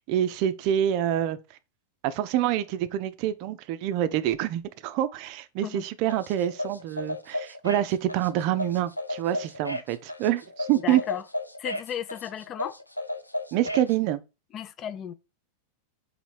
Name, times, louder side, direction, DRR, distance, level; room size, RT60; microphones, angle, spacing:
voice 1, 0.1-1.4 2.0-11.0 13.5-14.2, right 11 dB, 45° right, 0.5 m, -26 dB
sound 1, 6.1-13.9, left 1 dB, 85° left, 0.4 m, -34 dB
voice 2, 10.8-11.2 11.6-12.8 14.5-15.1, left 9 dB, 30° left, 0.4 m, -34 dB
4.0 x 2.7 x 4.5 m
figure-of-eight pair, 90°, 0 cm